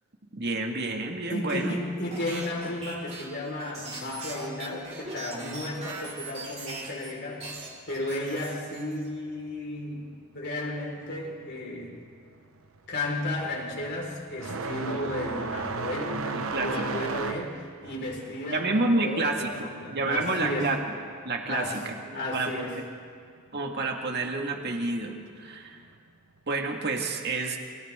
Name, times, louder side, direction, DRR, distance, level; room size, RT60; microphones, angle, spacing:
voice 1, 0.3-1.8 16.3-17.0 18.5-20.8 21.2-22.7 23.5-25.8 26.5-27.6, right 3 dB, 50° right, 2 dB, 2.0 m, -29 dB
voice 2, 1.3-7.5 7.9-10.1 10.3-12.0 12.9-20.7 21.5-21.8 22.1-22.7, left 1 dB, 50° left, -1 dB, 4.8 m, -33 dB
sound 1, 2.1-7.1 7.4-9.1, right 3 dB, 30° right, 4.3 m, -40 dB
sound 2, 11.8-12.1 12.4-20.8 21.1-22.1 23.1-23.2 24.0-24.1 25.8-26.0, right 4 dB, 70° right, 1.1 m, -35 dB
29.0 x 26.5 x 3.8 m, 2.1 s
head